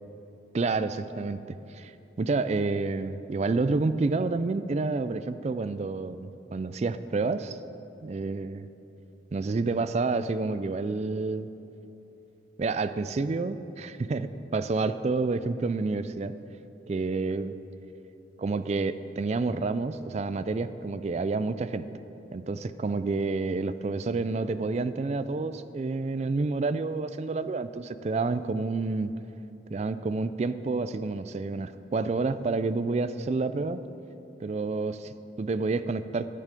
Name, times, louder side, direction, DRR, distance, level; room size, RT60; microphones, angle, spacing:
voice 1, 0.5-1.9 2.2-7.6 8.0-8.7 9.3-11.5 12.6-16.3 16.9-17.5 18.4-21.8 22.3-29.1 29.7-33.8 34.4-36.3, right 3 dB, 35° right, 12 dB, 0.3 m, -29 dB
12.5 x 10.0 x 5.2 m, 2.9 s
head